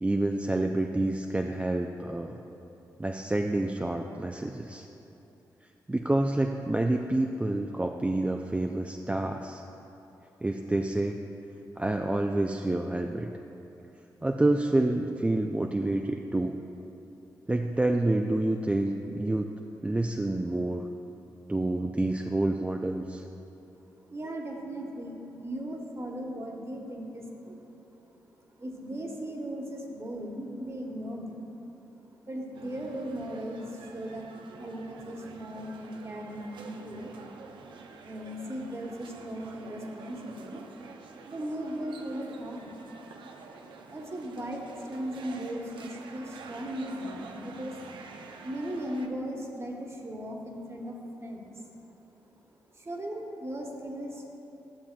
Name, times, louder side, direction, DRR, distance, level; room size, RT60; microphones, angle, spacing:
voice 1, 0.0-2.4 3.0-4.9 5.9-9.6 10.4-11.2 11.8-13.3 14.2-16.6 17.5-19.5 19.8-20.9 21.5-23.2, right 2 dB, 15° right, 3 dB, 0.4 m, -28 dB
voice 2, 24.1-27.7 28.1-28.2 28.6-31.5 32.3-34.3 34.6-37.1 38.0-40.6 41.2-42.8 43.9-47.8 48.4-51.5 52.7-54.2, equal, 35° right, 1 dB, 1.2 m, -37 dB
sound 1, 32.5-49.1, right 4 dB, 75° right, 0.5 m, -48 dB
11.5 x 6.9 x 2.2 m, 3.0 s
supercardioid pair, 40°, 8 cm